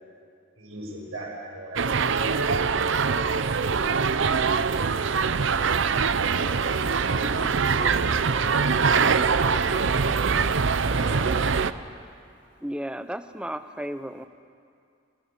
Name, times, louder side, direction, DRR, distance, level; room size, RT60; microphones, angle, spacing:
voice 1, 0.6-2.4 6.3-6.6 7.0-9.6 10.8-11.3, right 2 dB, 85° right, -3 dB, 7.0 m, -39 dB
sound 1, 1.8-11.7, right 5 dB, 65° right, 0.6 m, -23 dB
voice 2, 11.5-12.7, right 1 dB, 35° right, -2 dB, 3.8 m, -63 dB
voice 3, 12.6-14.2, equal, 5° right, 10 dB, 0.6 m, -33 dB
27.5 x 16.5 x 6.9 m, 2.4 s
head